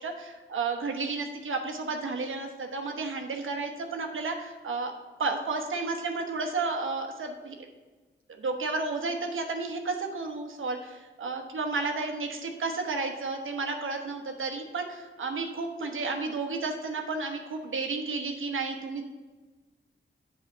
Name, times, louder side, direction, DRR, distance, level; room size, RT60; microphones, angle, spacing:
voice 1, 0.0-4.9 5.2-7.5 8.4-19.0, right 3 dB, 75° right, 4 dB, 1.0 m, -32 dB
7.6 x 4.2 x 6.6 m, 1.2 s
cardioid pair, 60°, 21 cm